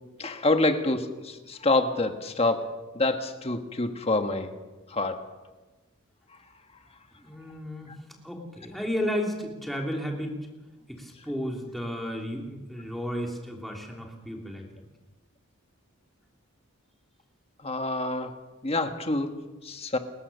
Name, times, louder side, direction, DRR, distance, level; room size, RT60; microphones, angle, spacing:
voice 1, 0.2-4.5 4.9-5.2 17.6-18.3 18.6-20.0, left 2 dB, 30° left, 6 dB, 1.4 m, -27 dB
voice 2, 7.2-8.0 8.2-10.4 10.9-14.8, equal, ahead, 0 dB, 3.0 m, -33 dB
30.0 x 14.5 x 6.8 m, 1.2 s
head